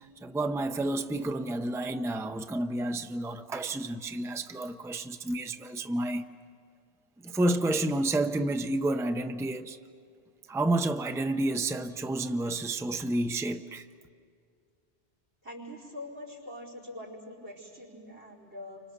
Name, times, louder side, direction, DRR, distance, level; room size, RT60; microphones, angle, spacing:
voice 1, 0.2-6.2 7.2-9.8 10.5-13.8, right 1 dB, 5° right, 0.6 m, -30 dB
voice 2, 15.4-18.8, left 1 dB, 75° right, 5.2 m, -44 dB
29.5 x 25.5 x 6.7 m
omnidirectional pair, 1.1 m